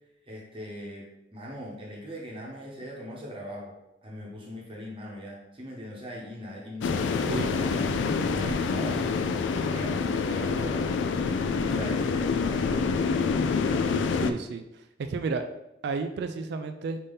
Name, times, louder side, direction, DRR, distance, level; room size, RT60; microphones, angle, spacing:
voice 1, 0.2-3.7 4.0-8.0 8.3-13.6, equal, 30° right, -3 dB, 0.9 m, -40 dB
sound 1, 6.8-14.3, left 5 dB, 70° left, 0.3 m, -27 dB
voice 2, 14.1-15.4 15.8-17.0, right 4 dB, 60° right, 7 dB, 0.3 m, -32 dB
5.2 x 2.7 x 3.5 m, 0.89 s
head